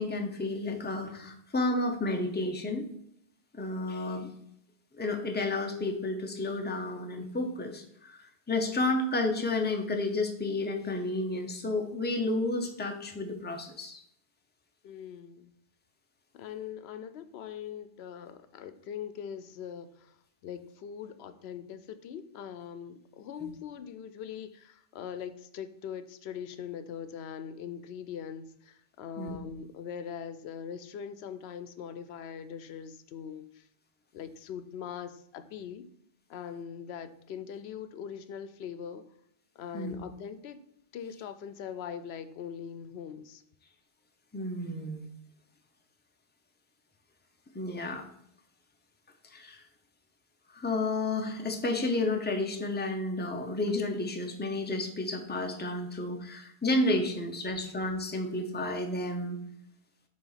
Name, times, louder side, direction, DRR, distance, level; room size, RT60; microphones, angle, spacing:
voice 1, 0.0-2.9 3.5-4.3 5.0-14.0 29.2-29.3 39.7-39.9 44.3-45.0 47.5-48.0 49.3-49.6 50.5-59.4, left 2 dB, 10° left, 3 dB, 0.7 m, -31 dB
voice 2, 14.8-15.5 16.3-20.2 20.4-33.7 34.1-35.9 36.3-39.1 39.6-40.6 40.9-43.4, left 8 dB, 85° left, 11 dB, 0.8 m, -41 dB
7.1 x 3.0 x 5.6 m, 0.71 s
omnidirectional pair, 1.0 m